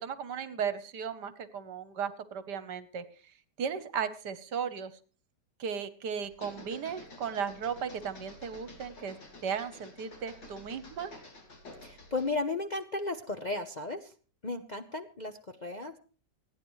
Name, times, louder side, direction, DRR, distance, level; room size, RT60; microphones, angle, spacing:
voice 1, 0.0-3.0 3.6-4.9 5.6-9.2 9.4-11.1, right 7 dB, 70° right, 13 dB, 1.7 m, -36 dB
sound 1, 6.2-12.4, left 2 dB, 80° left, 3.9 m, -50 dB
voice 2, 11.8-14.1 14.4-16.0, left 3 dB, 35° left, 5 dB, 0.7 m, -35 dB
28.5 x 9.8 x 3.2 m, 0.37 s
omnidirectional pair, 1.9 m